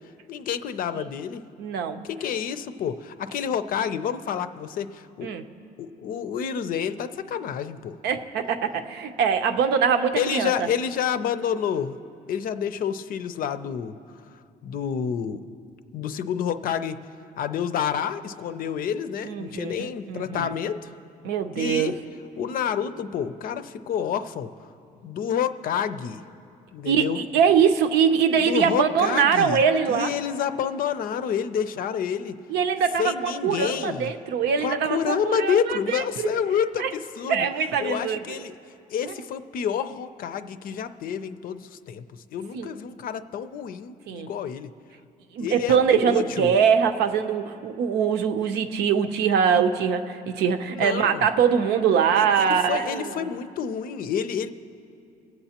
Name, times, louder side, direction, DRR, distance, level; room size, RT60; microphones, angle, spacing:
voice 1, 0.3-1.4 2.0-5.3 5.8-8.0 10.2-12.0 12.3-14.0 14.3-15.4 15.9-17.0 17.4-20.9 21.6-22.0 22.4-24.7 25.0-26.2 26.7-27.2 28.4-29.6 29.9-32.4 33.0-34.1 34.6-37.5 37.8-38.5 38.9-42.0 42.3-44.7 45.4-46.5 50.7-51.2 52.2-54.5, left 8 dB, 55° left, 11 dB, 0.5 m, -29 dB
voice 2, 1.6-2.0 5.2-5.4 8.0-10.7 19.2-20.5 21.2-21.9 26.9-30.1 32.5-36.3 36.8-36.9 37.3-38.4 39.1-39.2 42.5-42.7 44.1-44.3 45.3-53.3, right 7 dB, 80° right, 7 dB, 0.7 m, -23 dB
24.0 x 8.0 x 2.9 m, 2.6 s
cardioid pair, 110°, 17 cm